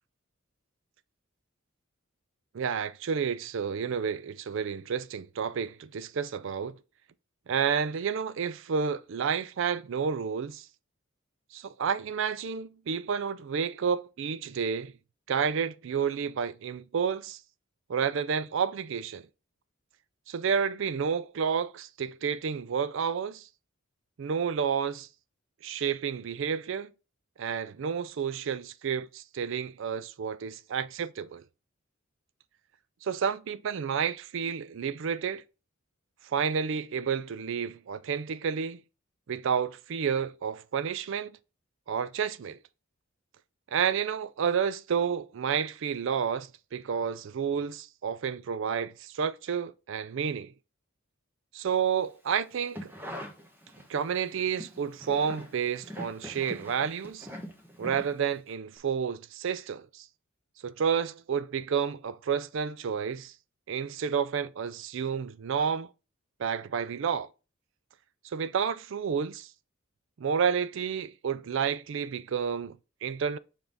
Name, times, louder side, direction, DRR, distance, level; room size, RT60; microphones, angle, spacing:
voice 1, 2.5-6.8 7.5-10.7 11.5-14.9 15.3-17.4 17.9-19.3 20.3-23.5 24.2-25.1 25.6-26.9 27.4-31.4 33.0-35.4 36.3-38.8 39.3-41.3 41.9-42.6 43.7-50.5 51.5-52.9 53.9-57.3 57.8-60.0 60.6-63.3 63.7-65.9 66.4-67.3 68.3-69.5 70.2-73.4, right 7 dB, 60° right, 0.4 m, -30 dB
sound 1, 52.5-54.1 54.4-58.5 58.8-58.9, equal, 10° right, 1.0 m, -43 dB
6.9 x 3.7 x 3.9 m
head